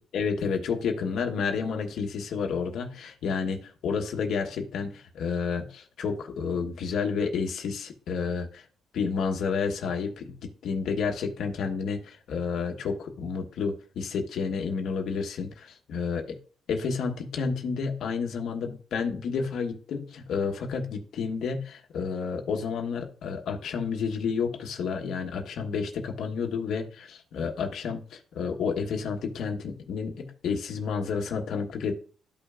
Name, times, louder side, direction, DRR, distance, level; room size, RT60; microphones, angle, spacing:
voice 1, 0.1-8.6 8.9-16.4 16.7-31.9, left 5 dB, 70° left, 3 dB, 1.3 m, -30 dB
13.0 x 5.6 x 2.5 m, 0.42 s
cardioid pair, 90°, 0 cm